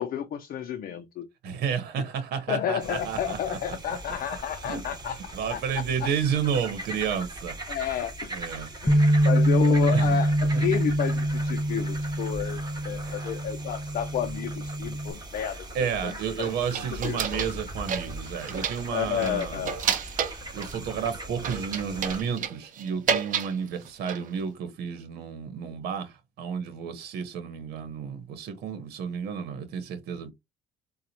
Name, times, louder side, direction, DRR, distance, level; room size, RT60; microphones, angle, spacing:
voice 1, 0.0-1.3 2.5-5.2 5.5-5.6 7.7-15.6 16.0-16.5 17.0-17.5 18.9-19.8, left 9 dB, 55° left, 0.6 m, -31 dB
voice 2, 1.4-3.6 3.9-4.0 4.6-4.8 5.3-7.5 8.3-8.7 9.5-10.2 10.5-10.6 15.7-19.7 20.5-30.3, right 7 dB, 75° right, 1.2 m, -31 dB
sound 1, 2.8-22.2, right 1 dB, 25° right, 1.7 m, -40 dB
Bass guitar, 8.9-15.1, right 1 dB, 10° left, 0.4 m, -25 dB
sound 2, 16.4-17.6 17.9-18.9 19.2-20.8 21.4-23.5 23.9-24.4, right 7 dB, 50° right, 0.8 m, -30 dB
4.0 x 2.4 x 2.8 m
cardioid pair, 110°, 17 cm